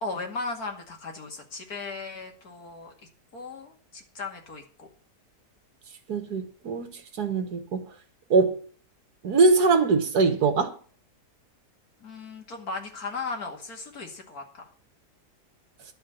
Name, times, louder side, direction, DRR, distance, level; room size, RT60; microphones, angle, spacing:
voice 1, 0.0-2.9 3.3-4.9 12.0-14.7, left 3 dB, 65° left, 2.7 m, -36 dB
voice 2, 6.1-7.8 8.3-8.6 9.2-10.8, right 4 dB, 75° right, 2.1 m, -22 dB
11.5 x 5.7 x 8.7 m
omnidirectional pair, 1.7 m